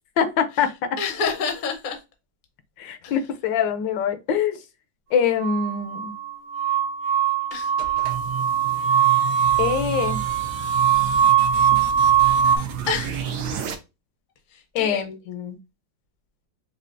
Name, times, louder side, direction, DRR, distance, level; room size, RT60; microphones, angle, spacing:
voice 1, 0.2-0.9 2.8-4.6 5.1-6.1 9.6-10.2 14.7-15.6, left 7 dB, 80° left, 1.3 m, -24 dB
voice 2, 1.0-2.0 3.0-3.1 7.5-7.7 12.9-13.3 14.5-15.1, left 5 dB, 45° left, 0.6 m, -28 dB
sound 1, 5.4-12.6, right 9 dB, 55° right, 0.6 m, -21 dB
sound 2, 7.5-13.7, right 8 dB, 70° right, 1.2 m, -31 dB
5.4 x 2.3 x 2.5 m
omnidirectional pair, 2.0 m